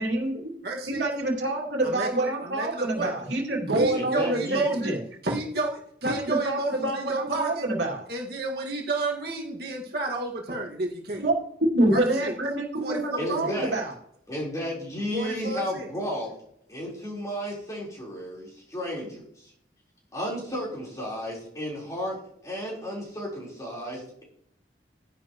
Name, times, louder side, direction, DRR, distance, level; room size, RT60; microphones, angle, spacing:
voice 1, 0.0-0.5 0.9-5.0 6.0-8.0 11.2-11.3 11.7-13.9, right 2 dB, 85° right, 0 dB, 2.6 m, -27 dB
voice 2, 0.6-1.0 1.8-3.1 3.7-4.9 5.2-7.7 8.1-11.2 11.9-12.3 12.8-13.5 15.1-15.9, right 2 dB, 60° right, -1 dB, 1.9 m, -31 dB
voice 3, 3.9-4.6 13.2-13.8 14.3-16.3 16.7-19.5 20.1-24.2, equal, 20° left, -4 dB, 4.0 m, -33 dB
11.0 x 10.5 x 3.1 m, 0.69 s
head